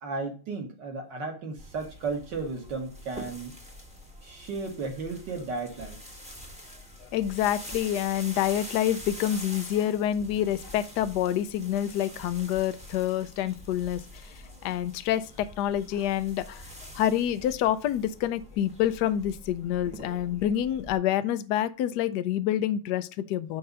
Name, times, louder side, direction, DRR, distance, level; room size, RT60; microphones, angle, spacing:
voice 1, 0.0-3.5 4.2-6.0, right 4 dB, 60° right, 2.3 m, -34 dB
sound 1, 1.6-20.9, equal, 5° right, 0.9 m, -45 dB
voice 2, 7.0-14.3 14.6-16.6 16.9-23.6, left 11 dB, 75° left, 1.0 m, -27 dB
6.7 x 4.8 x 5.4 m
omnidirectional pair, 2.3 m